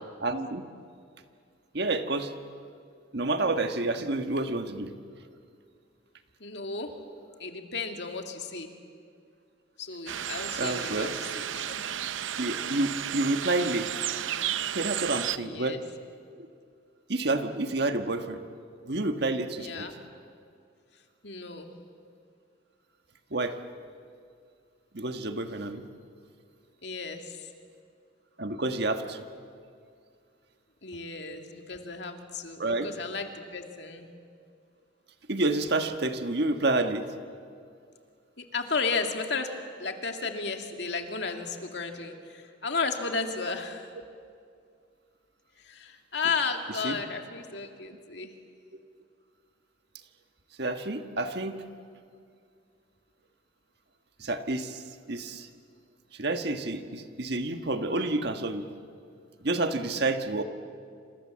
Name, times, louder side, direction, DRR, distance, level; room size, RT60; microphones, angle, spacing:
voice 1, 0.2-0.6 1.7-2.3 3.1-4.9 10.6-11.1 11.6-11.7 12.4-13.9 14.7-15.8 17.1-18.4 18.8-19.9 23.3-23.6 24.9-25.8 28.4-29.2 32.6-32.9 35.3-37.0 46.8-47.0 50.6-51.5 54.2-54.8 55.1-55.5 56.2-58.6 59.4-60.4, right 2 dB, 60° right, 7 dB, 1.5 m, -29 dB
voice 2, 6.4-6.9 7.4-8.7 9.8-11.7 15.3-15.8 19.6-19.9 21.2-21.8 26.8-27.5 30.8-34.1 38.4-39.5 39.8-43.9 45.6-48.3, left 4 dB, 60° left, 4 dB, 2.4 m, -34 dB
sound 1, 10.1-15.4, right 10 dB, 85° right, 0.7 m, -33 dB
27.5 x 27.5 x 7.5 m, 2.3 s
head